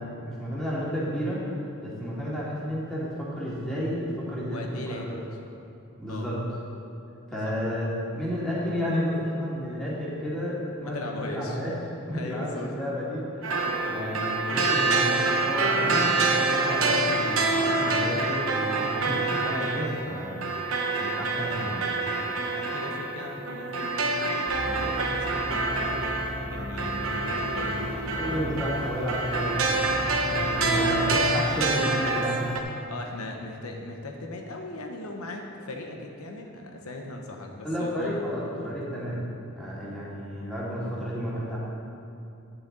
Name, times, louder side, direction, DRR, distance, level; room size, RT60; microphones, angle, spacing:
voice 1, 0.0-4.6 4.9-5.2 6.0-6.4 7.3-11.7 12.1-20.3 21.0-21.9 28.1-32.4 37.6-39.2 39.6-41.6, equal, 5° left, -9 dB, 2.3 m, -31 dB
voice 2, 4.2-5.1 6.1-6.3 7.3-7.5 10.8-11.6 12.1-12.7 22.5-24.3 24.6-26.2 26.5-28.4 30.6-31.6 31.9-32.3 32.9-38.3 38.6-38.7, left 2 dB, 85° left, 2 dB, 1.0 m, -38 dB
sound 1, 13.4-32.6, right 3 dB, 70° right, 1.0 m, -27 dB
sound 2, 24.5-31.3, equal, 40° right, 2.3 m, -37 dB
10.0 x 8.1 x 4.0 m, 2.7 s
head